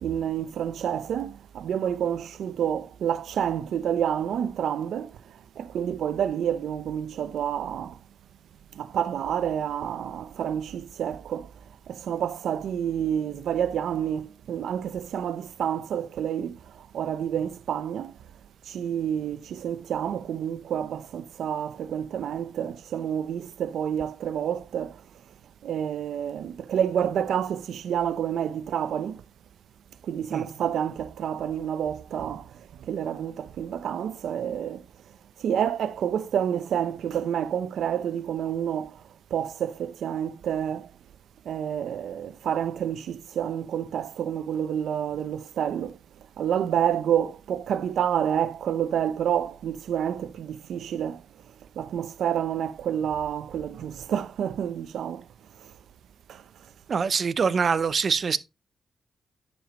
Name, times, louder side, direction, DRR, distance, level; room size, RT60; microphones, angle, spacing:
voice 1, 0.0-5.1 5.6-8.0 8.8-11.5 11.9-16.6 16.9-18.1 18.7-24.9 25.6-29.2 30.1-32.5 32.9-34.8 35.4-39.0 39.3-40.9 41.5-45.9 46.4-51.2 51.8-55.2 56.3-56.4, right 9 dB, 85° right, 0.6 m, -28 dB
voice 2, 56.9-58.4, right 5 dB, 45° right, 0.6 m, -24 dB
10.0 x 7.1 x 3.0 m
cardioid pair, 110°, 0 cm